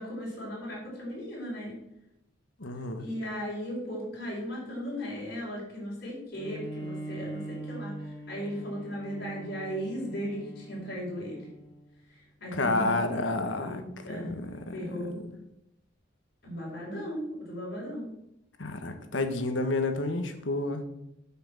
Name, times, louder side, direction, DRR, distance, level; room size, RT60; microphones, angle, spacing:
voice 1, 0.0-1.8 3.0-7.9 8.3-11.5 12.4-12.8 13.3-14.3 14.7-15.2 16.4-18.0, equal, 55° left, 5.0 m, -36 dB
voice 2, 2.6-3.0 12.5-15.2 18.6-20.8, left 2 dB, 80° left, 1.4 m, -30 dB
Bowed string instrument, 6.3-12.0, right 2 dB, 5° right, 3.3 m, -42 dB
9.7 x 5.9 x 7.4 m
head